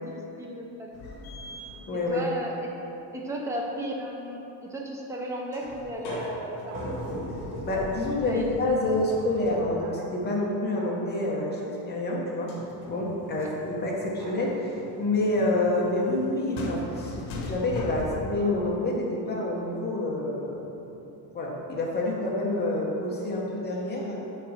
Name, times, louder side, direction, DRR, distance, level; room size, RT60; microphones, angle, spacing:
voice 1, 0.1-0.9 1.2-1.3 1.9-2.7 3.1-7.0 7.6-7.8 8.3-8.4 13.4-13.5, right 1 dB, 5° right, -1 dB, 0.4 m, -35 dB
sound 1, 0.9-2.5 5.5-10.2 12.5-18.4, left 2 dB, 80° left, 1.2 m, -39 dB
voice 2, 1.9-2.2 7.6-12.5 12.8-21.0 21.3-24.2, left 2 dB, 20° left, -3 dB, 0.9 m, -28 dB
sound 2, 6.0-8.5 9.7-10.4 10.7-11.2 14.1-14.8 18.3-19.1, right 2 dB, 85° right, 1.4 m, -41 dB
6.5 x 3.9 x 6.2 m, 3.0 s
cardioid pair, 175°, 47 cm